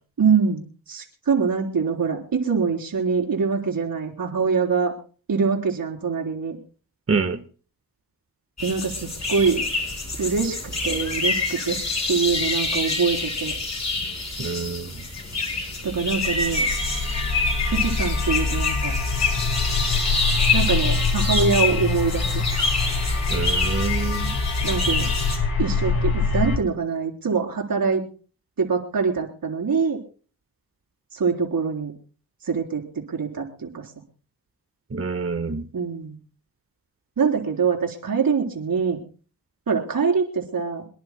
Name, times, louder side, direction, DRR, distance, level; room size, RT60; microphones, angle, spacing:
voice 1, 0.2-0.6 0.9-4.9 5.3-6.6 8.6-9.7 10.2-10.6 10.8-11.8 12.1-13.5 15.8-16.6 17.6-18.9 20.5-22.4 24.6-25.1 25.6-28.0 28.6-30.0 31.1-31.9 32.4-32.8 33.1-33.9 35.7-36.2 37.2-39.0 39.7-40.9, right 5 dB, 65° right, 3.9 m, -24 dB
sound 1, 8.6-25.4, left 3 dB, 45° left, 5.0 m, -27 dB
voice 2, 14.4-14.9 23.3-24.4 34.9-35.6, right 4 dB, 35° right, 1.4 m, -26 dB
sound 2, 15.9-26.6, left 4 dB, 80° left, 3.2 m, -25 dB
28.0 x 11.0 x 2.2 m
cardioid pair, 75°, 38 cm